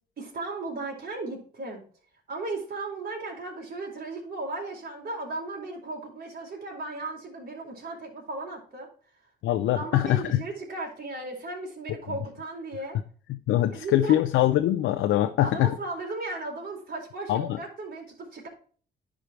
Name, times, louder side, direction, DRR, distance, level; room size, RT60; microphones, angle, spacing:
voice 1, 0.2-1.8 2.3-8.9 9.7-13.0 13.7-14.1 15.4-18.5, right 2 dB, 50° right, 0 dB, 4.4 m, -36 dB
voice 2, 9.4-10.4 13.5-15.7 17.3-17.6, left 13 dB, 90° left, 7 dB, 0.7 m, -23 dB
10.5 x 5.0 x 4.6 m, 0.42 s
cardioid pair, 90°, 20 cm